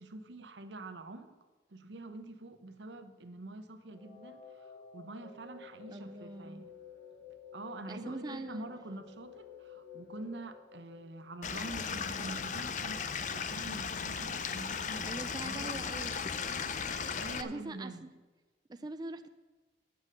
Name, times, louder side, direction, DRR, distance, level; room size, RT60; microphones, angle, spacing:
voice 1, 0.0-1.3 1.7-6.7 7.5-13.1 13.3-15.9 17.2-18.1, right 2 dB, 85° right, 10 dB, 0.9 m, -46 dB
sound 1, 3.8-11.8, left 6 dB, 75° left, 4.1 m, -52 dB
voice 2, 5.9-6.7 7.9-8.7 15.0-16.3 16.9-18.1 18.7-19.3, right 2 dB, 25° right, 9 dB, 0.4 m, -43 dB
Stream / Liquid, 11.4-17.4, left 6 dB, 45° left, 0.6 m, -36 dB
9.3 x 8.1 x 6.5 m, 1.2 s
head